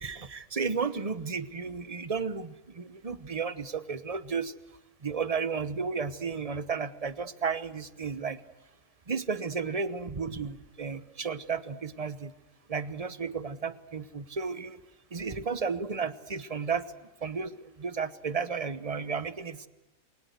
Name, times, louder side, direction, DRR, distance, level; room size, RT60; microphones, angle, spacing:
voice 1, 0.0-4.5 5.0-8.4 9.1-12.3 12.7-14.8 15.1-16.9 17.2-19.7, right 5 dB, 25° right, 14 dB, 1.0 m, -33 dB
28.5 x 23.0 x 8.1 m, 0.98 s
omnidirectional pair, 1.6 m